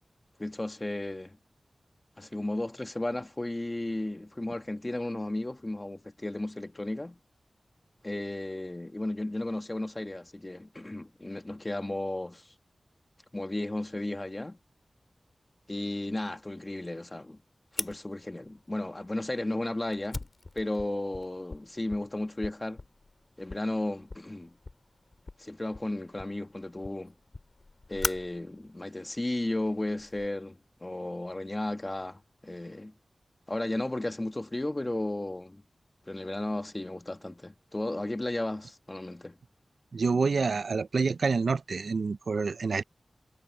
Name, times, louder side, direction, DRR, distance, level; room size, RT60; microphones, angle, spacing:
voice 1, 0.4-1.4 2.2-7.2 8.0-12.5 13.3-14.6 15.7-17.4 17.7-20.3 20.5-22.8 23.4-24.6 25.4-27.1 27.9-32.9 33.5-35.6 36.1-39.4, left 1 dB, 25° left, 1.5 m, -34 dB
Fire, 17.8-30.3, left 3 dB, 50° left, 2.8 m, -43 dB
voice 2, 39.9-42.8, right 4 dB, 85° right, 0.4 m, -27 dB
wide cardioid pair, 90°, 0 cm